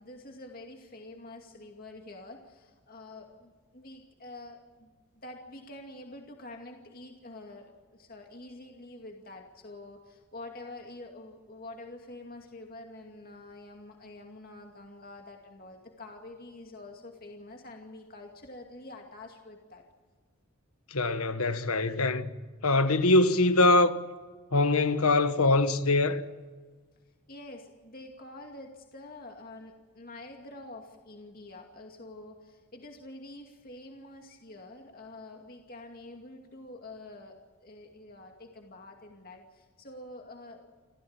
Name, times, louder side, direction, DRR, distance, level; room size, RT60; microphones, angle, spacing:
voice 1, 0.0-19.8 27.3-40.7, left 2 dB, 40° left, 2.4 m, -47 dB
voice 2, 20.9-22.3 22.6-24.0 24.5-26.2, left 2 dB, 85° left, 1.5 m, -23 dB
28.5 x 15.0 x 8.8 m
head